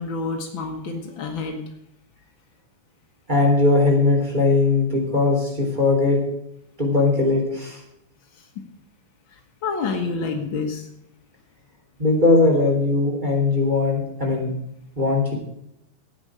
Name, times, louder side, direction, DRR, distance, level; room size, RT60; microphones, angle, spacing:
voice 1, 0.0-1.6 8.4-8.5 9.3-10.9, left 4 dB, 80° left, 3 dB, 1.1 m, -28 dB
voice 2, 3.3-6.2 6.8-7.8 12.0-14.5 14.9-15.3, left 3 dB, 10° right, 0 dB, 3.2 m, -19 dB
15.5 x 9.7 x 4.9 m, 0.77 s
omnidirectional pair, 4.3 m